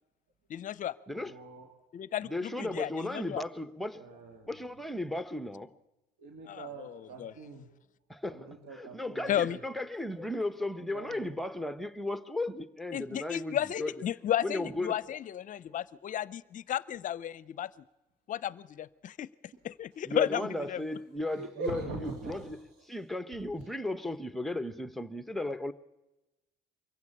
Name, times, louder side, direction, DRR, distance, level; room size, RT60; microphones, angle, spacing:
voice 1, 0.5-1.0 1.9-3.4 6.5-7.3 9.3-9.6 12.9-17.8 18.3-20.8, left 11 dB, 50° left, 0.6 m, -34 dB
voice 2, 1.1-1.7 2.6-3.0 3.9-4.6 6.2-7.7 8.3-9.6 10.9-11.4 21.3-22.9 23.6-23.7, right 3 dB, 85° right, 2.9 m, -43 dB
voice 3, 2.3-4.2 4.5-5.7 8.1-13.9 14.4-15.0 20.0-22.6 22.9-25.7, left 1 dB, ahead, 1.0 m, -35 dB
24.0 x 15.5 x 8.7 m
cardioid pair, 110°, 17 cm